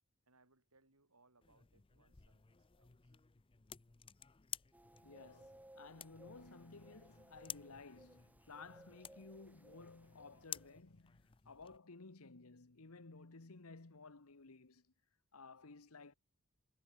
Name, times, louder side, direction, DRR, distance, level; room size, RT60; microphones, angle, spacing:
voice 1, 0.3-3.1, right 3 dB, 80° right, 7.7 m, -73 dB
sound 1, 1.4-11.8, left 9 dB, 25° left, 0.6 m, -54 dB
sound 2, 4.7-10.8, right 1 dB, 5° right, 0.9 m, -63 dB
voice 2, 5.0-14.9 15.3-16.1, left 3 dB, 75° left, 1.3 m, -56 dB
head